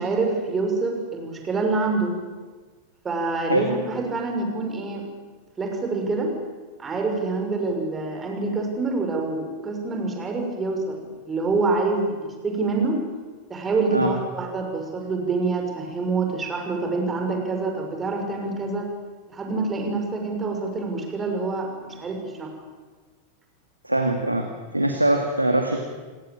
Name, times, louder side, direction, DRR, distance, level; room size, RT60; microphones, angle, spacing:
voice 1, 0.0-2.1 3.0-5.1 5.6-6.3 6.8-12.1 12.4-13.0 13.5-18.9 19.3-21.7 22.0-22.5, right 3 dB, 20° right, 3 dB, 6.3 m, -26 dB
voice 2, 23.8-24.5 24.7-25.9, right 1 dB, 85° right, 4 dB, 2.3 m, -22 dB
29.0 x 18.0 x 8.9 m, 1.4 s
figure-of-eight pair, 90°, 0 cm